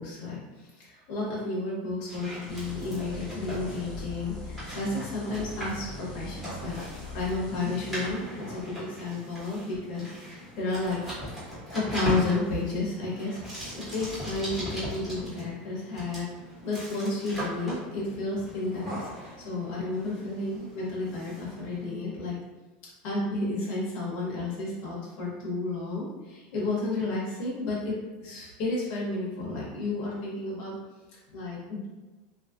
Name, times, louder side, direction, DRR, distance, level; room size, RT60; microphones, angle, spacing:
voice 1, 0.0-11.0 11.7-13.4 13.7-16.3 16.6-22.3 23.0-27.9 28.2-30.8 31.3-31.9, left 2 dB, 55° left, -5 dB, 1.2 m, -32 dB
sound 1, 2.1-21.9, equal, 5° right, 1.4 m, -40 dB
sound 2, 2.5-8.1, left 1 dB, 20° left, 0.6 m, -41 dB
2.9 x 2.7 x 2.5 m, 1.2 s
supercardioid pair, 150°, 5 cm